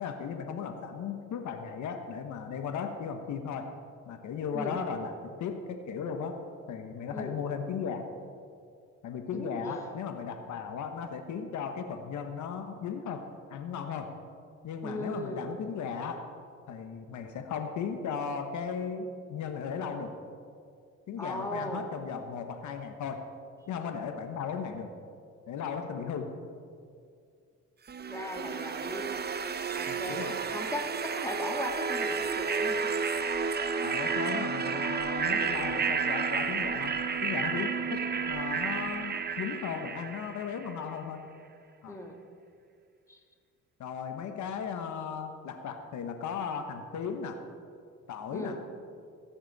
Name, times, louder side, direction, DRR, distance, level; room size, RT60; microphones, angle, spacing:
voice 1, 0.0-3.7 4.1-6.4 6.7-8.0 9.0-13.2 13.5-14.1 14.6-16.2 16.7-20.1 21.1-23.2 23.7-24.9 25.5-26.3 29.9-30.4 33.8-36.9 37.2-41.2 41.8-42.0 43.8-47.4 48.1-48.6, left 6 dB, 75° left, 6 dB, 1.2 m, -36 dB
voice 2, 9.3-9.9 14.8-15.6 21.2-21.9 28.1-29.1 29.7-32.9 41.9-42.2 43.1-43.2 48.3-48.6, left 1 dB, 10° left, 2 dB, 1.8 m, -37 dB
sound 1, 27.9-40.8, right 5 dB, 35° right, 0.7 m, -31 dB
18.5 x 10.5 x 4.1 m, 2.3 s
cardioid pair, 90°, 30 cm